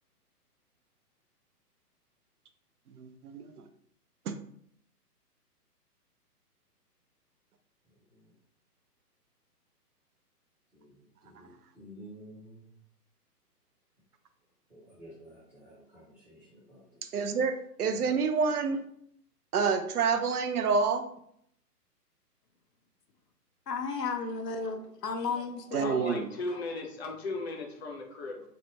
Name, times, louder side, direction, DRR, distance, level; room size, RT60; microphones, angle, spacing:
voice 1, 2.9-3.4 4.3-4.4 17.0-18.8 19.5-21.0 25.7-26.3, right 5 dB, 70° right, 8 dB, 0.5 m, -28 dB
voice 2, 10.7-12.7 14.7-17.3 17.9-18.1, equal, 5° right, -13 dB, 0.6 m, -52 dB
voice 3, 23.7-26.0, left 4 dB, 80° left, 5 dB, 0.7 m, -33 dB
voice 4, 25.8-28.4, left 3 dB, 40° left, 1 dB, 0.7 m, -37 dB
3.2 x 2.1 x 2.9 m, 0.69 s
hypercardioid pair, 140°, 48 cm